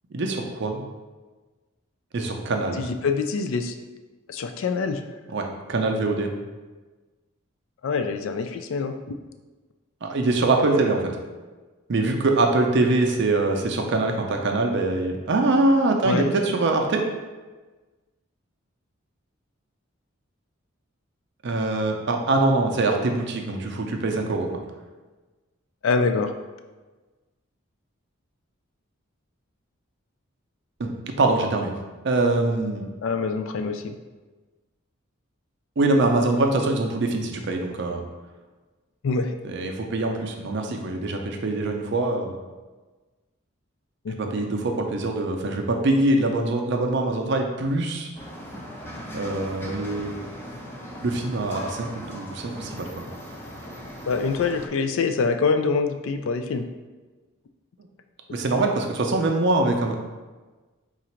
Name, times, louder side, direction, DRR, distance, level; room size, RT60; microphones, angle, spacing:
voice 1, 0.1-0.8 2.1-2.8 5.3-6.3 10.0-11.1 11.9-17.0 21.4-24.5 30.8-31.7 32.0-32.8 35.8-38.0 39.4-42.4 44.2-48.1 49.1-50.2 51.0-52.9 58.3-60.0, right 2 dB, 55° right, 3 dB, 0.5 m, -23 dB
voice 2, 2.8-3.7 4.3-5.0 7.8-9.2 16.0-16.3 25.8-26.3 33.0-34.0 39.0-39.4 44.0-44.3 54.1-56.7, left 4 dB, 65° left, 8 dB, 0.3 m, -25 dB
sound 1, 48.1-54.7, equal, 10° left, 0.5 m, -38 dB
3.9 x 2.5 x 4.3 m, 1.3 s
head